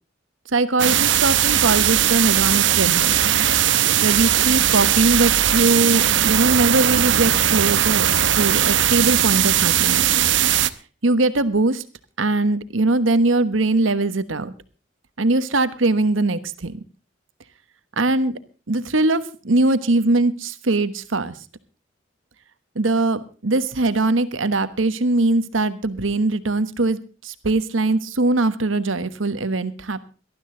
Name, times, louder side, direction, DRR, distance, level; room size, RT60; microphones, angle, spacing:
voice 1, 0.5-3.2 4.0-8.1 8.3-10.1 11.0-11.8 12.2-14.5 15.2-16.8 18.0-18.4 18.7-21.3 22.7-30.0, right 2 dB, 90° right, 13 dB, 1.2 m, -21 dB
sound 1, 0.8-10.7, right 11 dB, 70° right, 0.8 m, -18 dB
19.0 x 12.5 x 3.8 m, 0.36 s
head